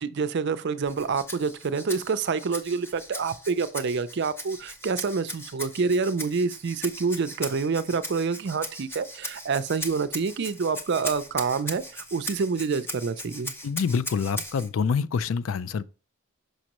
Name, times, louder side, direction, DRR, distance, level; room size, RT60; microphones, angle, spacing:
voice 1, 0.0-13.5, right 5 dB, 55° right, 0.4 m, -27 dB
Rattle (instrument), 0.8-14.7, equal, 10° left, 0.6 m, -38 dB
voice 2, 13.6-15.8, left 6 dB, 65° left, 0.4 m, -26 dB
6.2 x 5.3 x 2.9 m
head